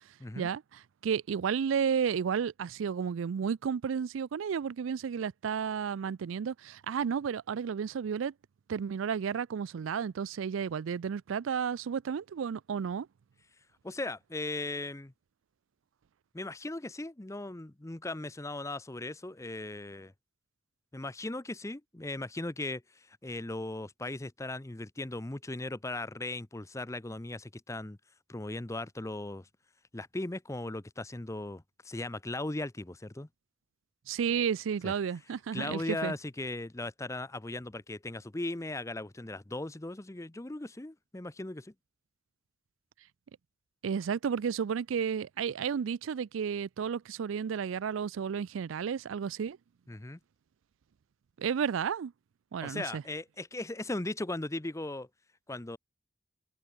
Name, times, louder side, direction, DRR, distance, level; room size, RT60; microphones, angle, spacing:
voice 1, 1.0-8.3 8.7-13.1 34.1-36.1 43.8-49.6 51.4-52.1 52.5-53.0, right 7 dB, 90° right, 0.4 m, -32 dB
voice 2, 13.8-15.1 16.3-20.1 20.9-28.0 28.3-29.5 29.9-33.3 34.8-34.9 35.5-41.7 49.9-50.2 52.6-55.1 55.5-55.8, left 2 dB, 15° left, 0.7 m, -38 dB
head